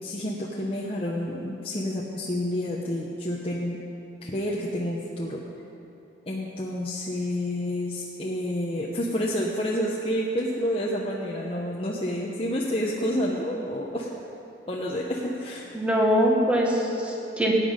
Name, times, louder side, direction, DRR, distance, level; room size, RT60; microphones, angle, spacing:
voice 1, 0.0-3.8 4.2-5.4 6.3-14.1 14.7-15.7, equal, 30° left, -4 dB, 0.9 m, -29 dB
voice 2, 15.7-17.5, equal, 5° right, -2 dB, 1.6 m, -23 dB
17.5 x 9.3 x 5.2 m, 2.9 s
head